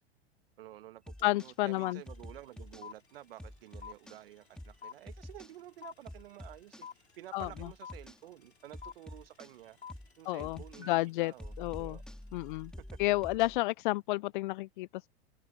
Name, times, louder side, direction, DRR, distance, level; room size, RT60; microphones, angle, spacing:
voice 1, 0.6-9.8 10.2-12.0 12.8-13.1, right 14 dB, 65° right, 1.5 m, -51 dB
sound 1, 1.1-1.5 2.1-2.9 3.4-4.2 4.6-4.8 5.1-5.5 6.1-6.9 7.4-8.2 8.7-9.5 9.9-10.1 10.4-10.9 11.4-13.6, left 1 dB, ahead, 2.0 m, -47 dB
sound 2, 1.2-1.3 1.5-12.7, left 7 dB, 90° left, 4.9 m, -50 dB
voice 2, 1.2-2.0 7.3-7.5 10.3-12.0 12.3-12.7 13.0-15.1, left 20 dB, 55° left, 0.5 m, -31 dB
hypercardioid pair, 95°, 31 cm